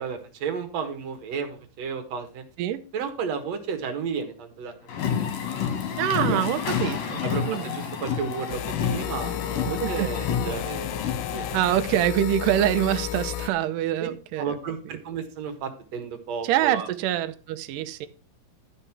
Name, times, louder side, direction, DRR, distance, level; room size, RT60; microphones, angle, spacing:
voice 1, 0.0-2.4 2.9-4.9 5.3-5.8 6.2-6.4 7.2-11.5 14.0-14.1 14.4-16.9, right 6 dB, 60° right, 2.0 m, -33 dB
sound 1, 4.9-11.6, left 7 dB, 55° left, 1.9 m, -29 dB
voice 2, 6.0-7.2 7.5-7.7 9.7-10.1 11.5-14.6 16.4-18.1, right 12 dB, 80° right, 2.0 m, -25 dB
sound 2, 8.5-13.5, left 13 dB, 80° left, 2.4 m, -33 dB
12.5 x 5.3 x 5.9 m
omnidirectional pair, 4.6 m